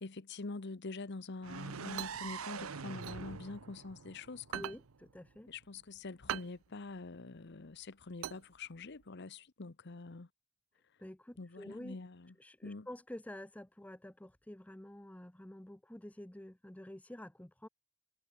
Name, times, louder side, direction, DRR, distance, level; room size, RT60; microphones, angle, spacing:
voice 1, 0.0-4.6 5.5-10.3 11.4-12.3 12.6-12.9, left 3 dB, 55° left, 0.9 m, -45 dB
sound 1, 1.4-5.3, right 5 dB, 90° right, 0.9 m, -45 dB
sound 2, 1.6-4.0 4.4-9.0, right 11 dB, 70° right, 0.3 m, -44 dB
voice 2, 4.5-5.5 11.0-12.0 12.4-17.7, left 1 dB, 5° left, 0.6 m, -49 dB
head